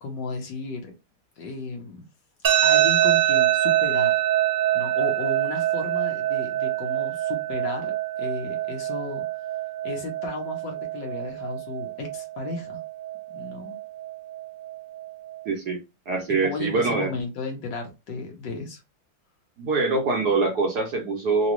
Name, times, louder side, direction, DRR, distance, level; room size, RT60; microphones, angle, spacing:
voice 1, 0.0-0.9 1.4-2.1 2.6-4.2 4.7-9.3 9.8-12.8 13.3-13.8 16.3-18.8, left 3 dB, 65° left, 1.5 m, -34 dB
sound 1, 2.4-15.4, right 13 dB, 85° right, 0.7 m, -25 dB
voice 2, 15.5-15.8 16.1-17.1 19.6-21.5, right 3 dB, 60° right, 1.2 m, -24 dB
3.9 x 2.3 x 3.0 m
omnidirectional pair, 2.2 m